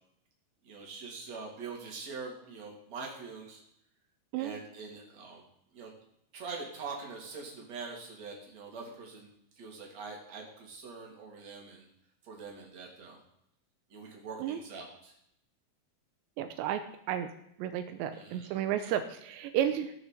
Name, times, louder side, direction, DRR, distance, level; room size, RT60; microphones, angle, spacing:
voice 1, 0.6-3.6 4.3-5.4 5.7-5.9 6.3-9.3 9.6-11.9 12.2-13.2 13.9-15.1 18.1-18.5, right 4 dB, 40° right, -1 dB, 3.7 m, -44 dB
voice 2, 16.4-16.8 17.1-17.3 17.6-19.9, right 10 dB, 85° right, 8 dB, 3.0 m, -32 dB
17.5 x 6.5 x 6.7 m, 0.75 s
omnidirectional pair, 5.2 m